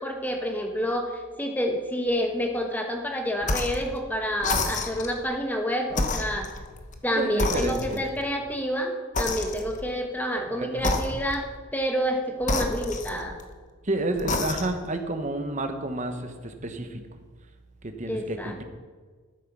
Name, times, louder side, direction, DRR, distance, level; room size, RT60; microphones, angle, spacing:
voice 1, 0.0-6.5 7.0-13.4 18.1-18.6, equal, 10° left, 3 dB, 1.3 m, -28 dB
sound 1, 3.4-3.9 4.4-5.2 5.9-7.0 7.4-8.2 9.1-9.9 10.8-11.5 12.4-13.5 14.1-14.9, left 3 dB, 35° left, 1.0 m, -29 dB
voice 2, 7.2-8.0 10.5-11.0 13.8-17.2 17.8-18.6, right 1 dB, 35° right, 6 dB, 1.1 m, -30 dB
12.0 x 9.2 x 6.1 m, 1.5 s
head